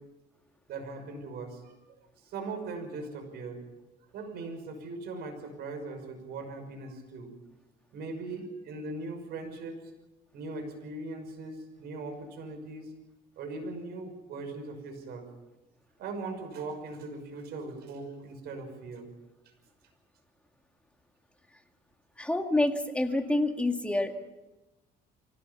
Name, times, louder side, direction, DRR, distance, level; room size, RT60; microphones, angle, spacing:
voice 1, 0.7-1.7 2.2-3.6 4.1-7.3 7.9-9.7 10.3-12.9 13.4-15.3 16.0-19.1, right 3 dB, 75° right, 5 dB, 6.0 m, -39 dB
voice 2, 22.2-24.1, left 2 dB, 5° left, 5 dB, 2.1 m, -27 dB
24.5 x 17.0 x 7.2 m, 1.0 s
cardioid pair, 110°, 17 cm